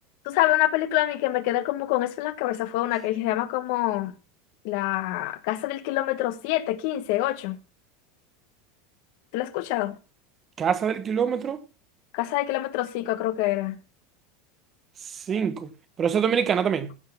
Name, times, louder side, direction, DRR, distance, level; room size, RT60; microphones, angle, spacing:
voice 1, 0.2-4.1 4.6-7.6 9.3-9.9 12.1-13.8, left 15 dB, 55° left, 1.2 m, -26 dB
voice 2, 10.6-11.6 15.1-15.7 16.0-16.9, right 7 dB, 25° right, 0.9 m, -25 dB
15.0 x 6.5 x 5.7 m
supercardioid pair, 155°, 0 cm